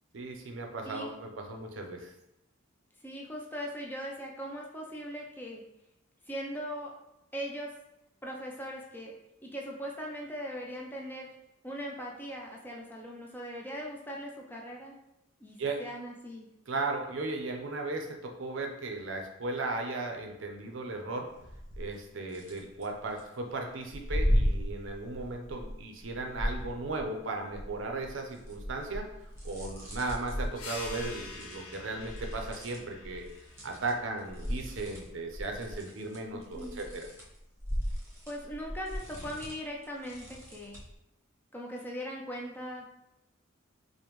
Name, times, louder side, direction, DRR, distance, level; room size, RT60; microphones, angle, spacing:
voice 1, 0.1-2.1 15.6-15.8 16.7-21.3 21.8-29.0 29.4-33.3 33.6-37.0, right 3 dB, 60° right, 3 dB, 0.6 m, -36 dB
voice 2, 0.8-1.2 3.0-5.6 6.3-6.9 7.3-7.7 8.2-9.1 9.4-11.3 11.6-15.0 15.4-16.5 36.3-36.8 38.3-40.8 41.5-42.9, equal, 10° left, -1 dB, 0.4 m, -40 dB
sound 1, 21.3-21.9 22.3-23.2 23.9-27.2 27.5-33.9 34.2-40.9, equal, 10° right, 0.9 m, -36 dB
sound 2, 30.5-35.7, left 3 dB, 85° left, 0.7 m, -47 dB
5.1 x 2.1 x 3.0 m, 0.85 s
head